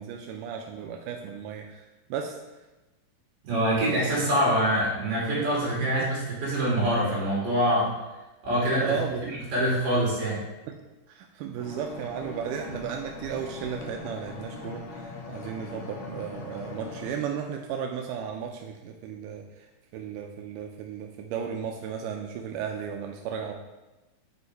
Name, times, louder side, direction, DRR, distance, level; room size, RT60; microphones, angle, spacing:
voice 1, 0.0-1.8 2.1-2.4 8.8-9.4 10.7-10.8 11.1-19.4 19.9-23.5, right 7 dB, 85° right, 3 dB, 1.8 m, -34 dB
voice 2, 3.4-7.9 8.4-8.9 9.2-10.4, equal, 65° right, -7 dB, 3.9 m, -25 dB
sound 1, 11.6-17.1, left 3 dB, 65° left, 2.2 m, -40 dB
9.5 x 4.6 x 3.3 m, 1.1 s
omnidirectional pair, 4.2 m